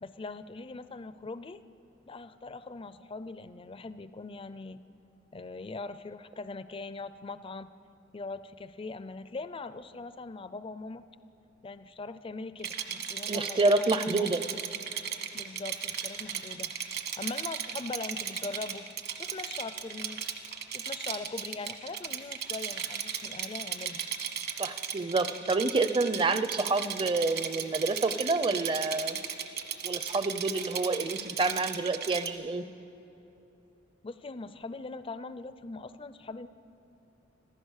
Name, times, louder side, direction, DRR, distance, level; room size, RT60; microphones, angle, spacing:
voice 1, 0.0-1.6 2.1-4.8 5.3-7.7 8.1-11.0 11.6-14.6 15.3-16.7 17.2-18.9 19.2-20.3 20.7-24.0 34.0-36.5, left 3 dB, 30° left, 12 dB, 0.5 m, -41 dB
Rattle, 12.6-32.3, right 8 dB, 55° right, 1.5 m, -36 dB
voice 2, 13.3-14.4 24.6-29.2 29.8-32.6, right 3 dB, 25° right, 12 dB, 0.6 m, -28 dB
26.5 x 15.5 x 6.5 m, 2.9 s
head